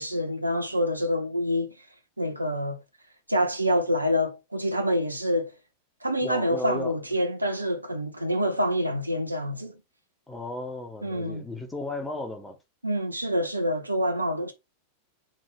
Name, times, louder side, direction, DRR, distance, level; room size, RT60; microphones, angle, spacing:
voice 1, 0.0-1.7 2.2-2.8 3.3-5.5 6.0-9.7 11.0-11.5 12.8-14.5, equal, 85° right, 1.0 m, -26 dB
voice 2, 6.2-6.9 10.3-12.6, left 1 dB, 10° left, 1.2 m, -34 dB
5.0 x 2.8 x 3.5 m
figure-of-eight pair, 90°, 0 cm